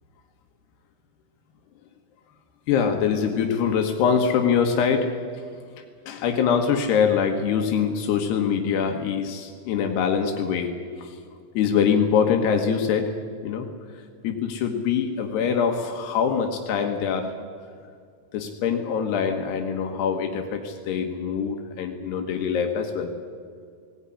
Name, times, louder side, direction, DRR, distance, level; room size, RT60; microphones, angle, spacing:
voice 1, 2.7-5.2 6.1-11.2 11.6-13.2 13.4-13.7 14.2-17.4 18.3-23.2, left 7 dB, 85° left, 3 dB, 3.5 m, -24 dB
19.5 x 18.0 x 10.0 m, 2.2 s
omnidirectional pair, 4.6 m